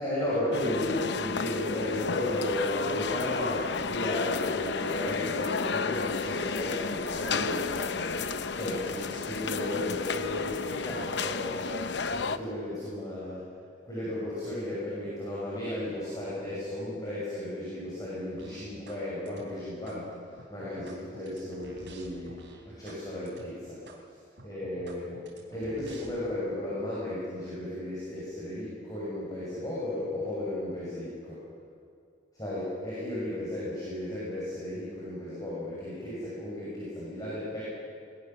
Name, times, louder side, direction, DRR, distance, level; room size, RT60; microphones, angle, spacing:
voice 1, 0.0-13.5 13.8-20.2 20.5-22.4 22.8-23.8 24.4-25.2 25.5-31.4 32.3-37.6, left 1 dB, 20° left, -8 dB, 6.3 m, -34 dB
sound 1, 0.5-12.4, left 4 dB, 65° left, 0.8 m, -32 dB
sound 2, 18.4-19.0 19.3-20.0 20.4-23.0 23.3-23.5 23.9-24.0 24.4-26.4, right 2 dB, 65° right, 3.7 m, -50 dB
21.0 x 20.5 x 6.9 m, 2.3 s
head